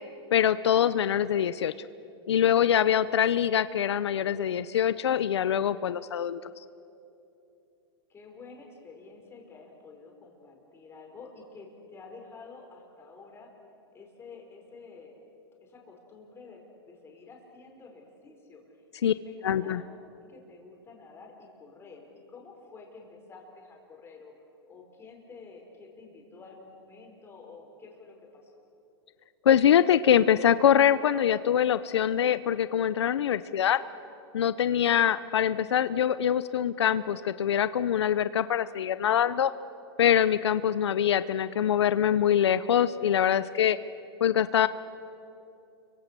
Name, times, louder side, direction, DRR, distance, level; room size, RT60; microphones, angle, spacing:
voice 1, 0.3-1.7 2.3-6.4 19.0-19.1 19.4-19.8 29.5-33.8 34.3-39.5 40.0-43.8 44.2-44.7, left 9 dB, 85° left, 14 dB, 0.7 m, -24 dB
voice 2, 8.1-13.5 13.9-15.2 15.6-19.8 20.1-24.4 24.7-28.5, left 4 dB, 20° left, 1 dB, 4.8 m, -50 dB
30.0 x 24.0 x 6.8 m, 2.8 s
hypercardioid pair, 135°, 14 cm